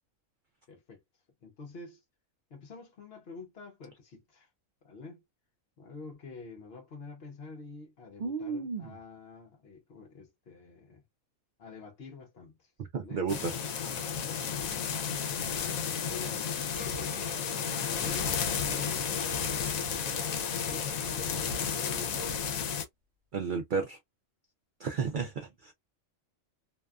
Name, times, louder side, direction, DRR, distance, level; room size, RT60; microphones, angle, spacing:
voice 1, 0.7-1.0 1.4-2.0 2.5-4.5 4.8-5.2 5.8-11.0 11.6-12.7 13.0-13.3 16.1-16.4 16.8-17.5 17.9-19.7 20.6-22.5, left 4 dB, 55° left, 0.9 m, -48 dB
voice 2, 8.2-8.9 12.9-14.1 23.3-24.0 24.8-25.7, right 5 dB, 80° right, 0.4 m, -33 dB
sound 1, 13.3-22.8, left 7 dB, 80° left, 1.0 m, -32 dB
sound 2, 16.7-22.5, equal, 50° right, 1.1 m, -46 dB
2.7 x 2.3 x 2.3 m
omnidirectional pair, 1.4 m